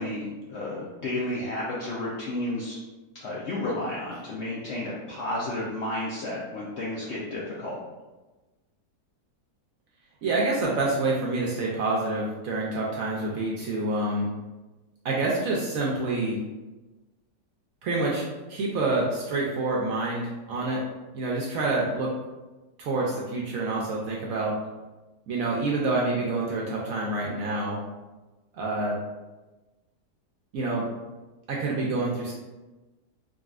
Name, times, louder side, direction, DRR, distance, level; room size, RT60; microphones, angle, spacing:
voice 1, 0.0-2.8 3.2-7.8, left 1 dB, 85° left, -6 dB, 0.6 m, -32 dB
voice 2, 10.2-14.3 15.0-16.4 17.8-18.2 18.5-20.8 21.1-22.1 22.8-24.5 25.3-27.8 28.5-29.0 30.5-30.9 31.5-32.3, right 2 dB, 70° right, -4 dB, 0.8 m, -27 dB
3.8 x 2.3 x 2.4 m, 1.1 s
omnidirectional pair, 1.8 m